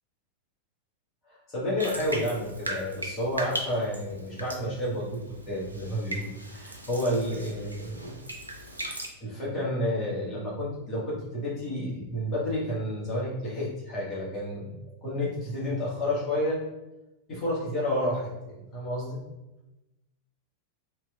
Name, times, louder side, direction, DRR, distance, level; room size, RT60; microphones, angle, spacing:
voice 1, 1.3-5.1 5.5-8.2 9.2-16.6 17.3-19.2, left 1 dB, 30° left, -6 dB, 1.4 m, -30 dB
Bathtub (filling or washing), 1.8-9.1, right 1 dB, 85° right, 0.4 m, -38 dB
3.3 x 2.9 x 2.3 m, 1.0 s
figure-of-eight pair, 90°, 0 cm